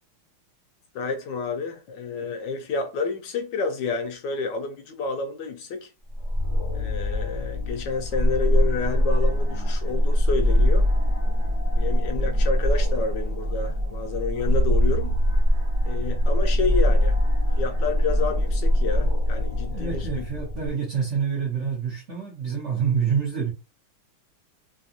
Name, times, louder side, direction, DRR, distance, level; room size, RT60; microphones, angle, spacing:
voice 1, 0.9-5.9 6.7-10.9 11.7-15.1 15.8-17.2 17.6-20.1, left 4 dB, 70° left, 1.1 m, -29 dB
sound 1, 6.1-20.7, equal, 20° right, 1.1 m, -23 dB
voice 2, 19.7-23.5, right 7 dB, 75° right, 0.6 m, -27 dB
3.4 x 2.8 x 2.4 m
omnidirectional pair, 2.3 m